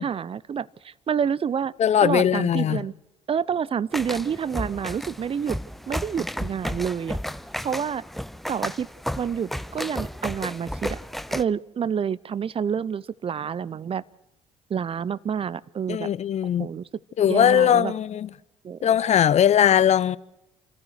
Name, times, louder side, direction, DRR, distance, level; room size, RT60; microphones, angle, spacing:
voice 1, 0.0-1.7 2.0-2.9 3.3-5.6 5.9-7.2 7.6-8.0 8.5-8.9 9.2-11.0 11.3-14.0 14.7-16.1 16.6-16.8 17.3-17.9 18.6-18.8, right 7 dB, 35° right, 0.7 m, -28 dB
voice 2, 1.8-2.8 15.9-16.7 17.2-18.3 18.8-20.2, left 9 dB, 45° left, 0.8 m, -20 dB
sound 1, 3.9-11.4, equal, ahead, 0.7 m, -33 dB
28.5 x 14.5 x 6.5 m
hypercardioid pair, 55°, 15 cm